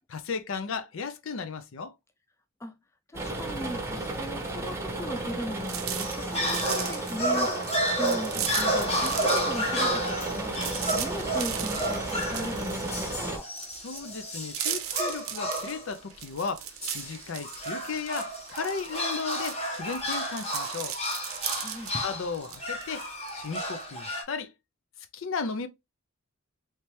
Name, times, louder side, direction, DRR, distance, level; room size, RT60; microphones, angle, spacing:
voice 1, 0.1-1.9 13.8-16.7 16.9-21.0 22.0-23.0 23.3-24.5 25.1-25.7, left 5 dB, 65° left, 0.5 m, -35 dB
voice 2, 3.1-13.5 21.5-22.0, left 1 dB, 15° left, 0.3 m, -38 dB
sound 1, 3.1-13.4, right 2 dB, 15° right, 0.9 m, -34 dB
sound 2, 5.6-9.5 9.8-23.8, right 10 dB, 80° right, 0.6 m, -37 dB
sound 3, 6.0-15.9 16.8-24.2, equal, 30° left, 1.2 m, -31 dB
3.2 x 2.8 x 3.1 m
head